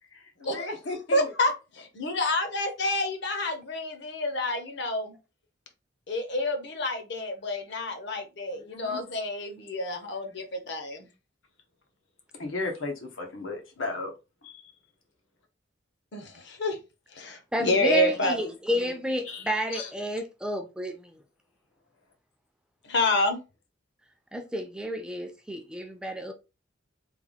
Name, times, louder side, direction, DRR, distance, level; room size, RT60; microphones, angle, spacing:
voice 1, 0.4-1.3 8.5-9.0 12.4-14.1 14.4-14.6 19.3-19.4 19.7-19.9, left 3 dB, 85° left, 1.1 m, -35 dB
voice 2, 1.1-5.1 6.1-11.1 16.1-16.8 17.1-18.5 18.8-18.9 22.8-23.4, left 1 dB, 60° left, 0.9 m, -28 dB
voice 3, 17.3-21.1 24.3-26.3, left 1 dB, 5° right, 0.4 m, -31 dB
3.4 x 2.4 x 3.5 m
head